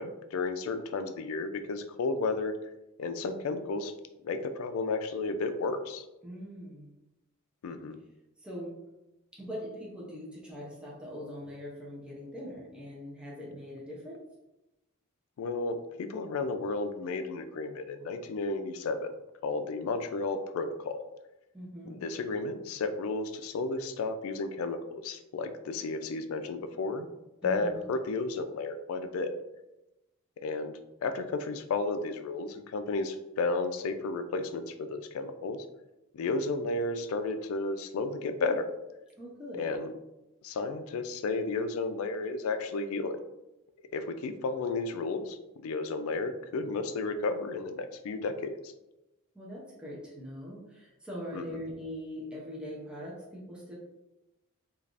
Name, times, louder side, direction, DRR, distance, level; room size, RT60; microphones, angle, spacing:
voice 1, 0.0-2.5 3.0-3.9 4.2-6.0 7.6-8.0 15.4-19.1 19.4-21.0 21.9-27.1 27.4-29.3 30.4-30.7 31.0-35.6 36.1-38.7 39.5-39.9 40.4-43.2 43.9-45.4 45.6-48.7 51.3-51.4, left 3 dB, 70° left, 9 dB, 0.3 m, -33 dB
voice 2, 6.2-6.9 8.4-8.8 9.3-14.2 21.5-22.0 27.4-27.9 39.2-39.7 49.3-53.7, equal, 5° right, -6 dB, 0.6 m, -42 dB
3.3 x 2.3 x 2.5 m, 0.95 s
head